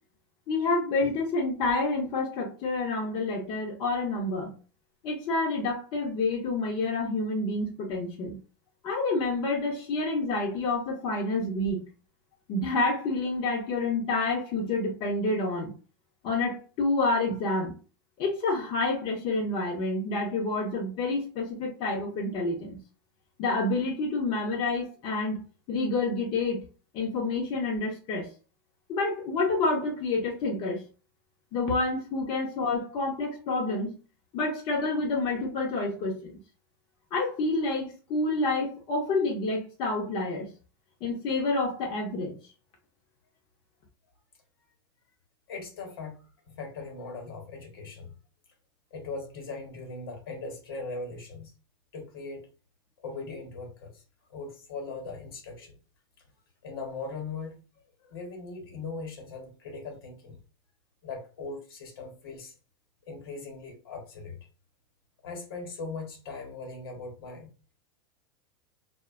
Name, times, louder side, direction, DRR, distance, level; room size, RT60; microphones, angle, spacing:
voice 1, 0.5-4.5 5.0-8.4 8.8-11.8 12.5-15.7 16.2-17.7 18.2-22.8 23.4-25.4 25.7-26.6 26.9-28.3 28.9-30.8 31.5-34.0 34.3-36.4 37.1-40.5 41.0-42.4, left 2 dB, 45° left, 0 dB, 0.6 m, -28 dB
voice 2, 45.5-48.1 48.9-51.5 51.9-52.4 53.0-54.0 54.3-55.8 56.6-57.6 58.0-60.4 61.0-62.5 63.1-64.4 65.2-67.5, left 3 dB, 75° left, 3 dB, 1.0 m, -39 dB
2.4 x 2.1 x 2.4 m, 0.34 s
hypercardioid pair, 115°, 12 cm